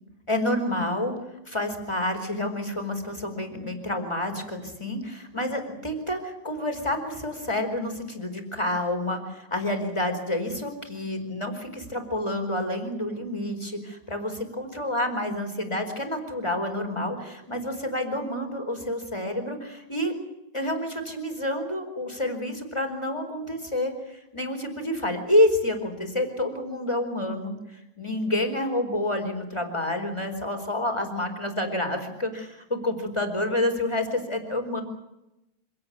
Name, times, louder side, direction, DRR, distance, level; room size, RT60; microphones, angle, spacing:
voice 1, 0.3-1.2 1.5-20.1 20.5-27.5 28.0-34.8, left 1 dB, 10° left, 6 dB, 4.4 m, -28 dB
26.0 x 18.0 x 8.4 m, 0.91 s
omnidirectional pair, 3.4 m